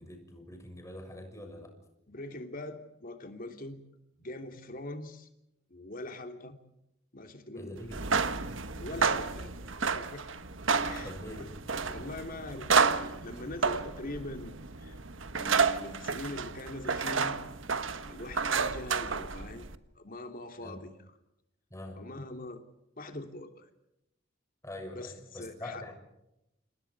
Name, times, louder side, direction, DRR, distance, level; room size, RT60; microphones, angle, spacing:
voice 1, 0.0-1.7 7.5-8.1 11.0-11.4 20.6-20.8 21.7-22.0 24.6-26.0, left 1 dB, 15° left, 4 dB, 6.6 m, -44 dB
voice 2, 2.1-3.8 4.2-5.3 5.7-6.6 7.1-8.2 8.7-9.5 9.9-10.3 10.8-11.1 11.4-11.5 11.9-15.0 15.4-17.4 18.1-19.7 20.0-20.9 22.0-22.6 23.0-23.7 24.9-25.9, left 2 dB, 45° left, 6 dB, 3.1 m, -42 dB
sound 1, 7.9-19.8, right 5 dB, 75° right, 1.4 m, -31 dB
29.5 x 28.0 x 4.8 m, 0.86 s
head